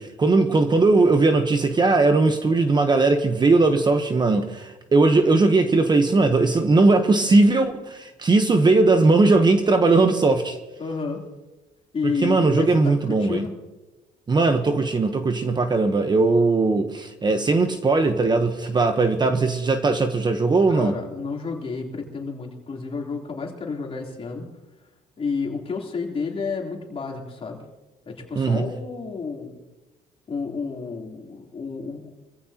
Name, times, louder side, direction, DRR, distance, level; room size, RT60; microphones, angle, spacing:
voice 1, 0.0-10.6 12.2-13.4 14.3-20.9 28.4-28.6, right 3 dB, 25° right, 1.0 m, -19 dB
voice 2, 10.8-11.2 11.9-13.5 20.7-24.4 25.2-27.6 28.0-29.6 30.3-32.1, left 4 dB, 35° left, 3.5 m, -30 dB
24.5 x 15.5 x 2.9 m
cardioid pair, 110°, 17 cm